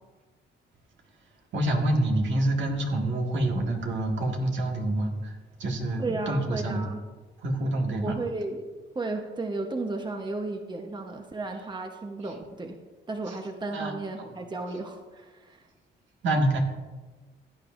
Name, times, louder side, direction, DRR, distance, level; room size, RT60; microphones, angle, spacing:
voice 1, 1.5-6.9 7.4-8.2 12.2-12.4 13.2-13.4 13.7-13.9 14.3-14.4 14.7-14.8 16.2-16.6, right 1 dB, 70° right, 1 dB, 1.8 m, -27 dB
voice 2, 6.0-7.0 8.0-8.7 8.9-12.8 13.1-15.7, right 2 dB, 20° right, 4 dB, 1.0 m, -34 dB
16.0 x 9.2 x 2.6 m, 1.3 s
cardioid pair, 90°, 20 cm